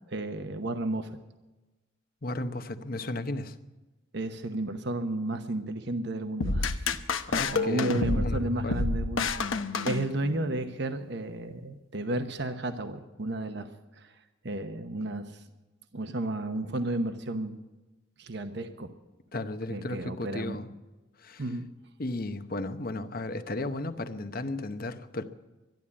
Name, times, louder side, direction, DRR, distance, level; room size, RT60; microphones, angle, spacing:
voice 1, 0.1-1.2 4.1-6.8 7.3-9.6 9.8-13.7 14.0-14.1 14.4-15.4 15.9-17.6 18.2-18.9 19.7-20.6 21.4-21.7, right 2 dB, 60° right, 8 dB, 0.9 m, -32 dB
voice 2, 2.2-3.5 7.3-8.8 19.3-20.7 21.2-21.4 22.0-25.2, left 2 dB, 45° left, 10 dB, 0.9 m, -34 dB
sound 1, 6.4-10.6, left 3 dB, 85° left, 0.9 m, -29 dB
12.5 x 12.0 x 8.6 m, 1.1 s
head